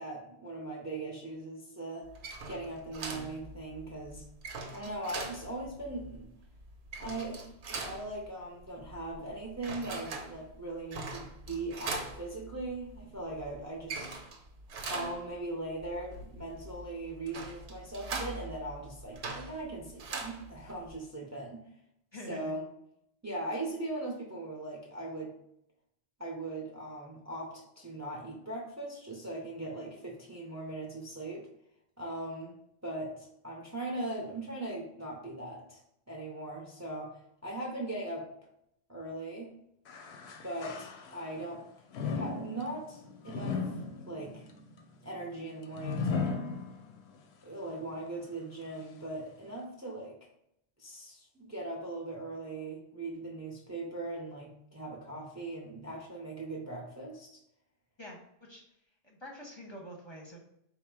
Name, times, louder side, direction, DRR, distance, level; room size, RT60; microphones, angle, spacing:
voice 1, 0.0-2.1 2.5-4.2 4.7-6.3 7.0-14.2 14.8-21.7 22.3-22.6 23.2-25.4 26.2-31.5 32.0-32.6 32.8-35.8 36.1-38.3 38.9-39.6 40.4-41.6 42.1-43.6 44.1-44.4 45.0-46.4 47.4-50.2 50.8-57.4, right 2 dB, 20° right, -1 dB, 0.5 m, -40 dB
sound 1, 2.0-21.0, right 3 dB, 80° right, 0.9 m, -42 dB
voice 2, 22.1-22.5 58.0-58.8 59.0-60.4, equal, 30° left, -2 dB, 0.7 m, -46 dB
sound 2, 39.9-41.4 41.9-47.2 47.7-47.8 48.6-48.7, left 5 dB, 85° left, 0.8 m, -37 dB
4.3 x 2.0 x 4.6 m, 0.76 s
omnidirectional pair, 1.1 m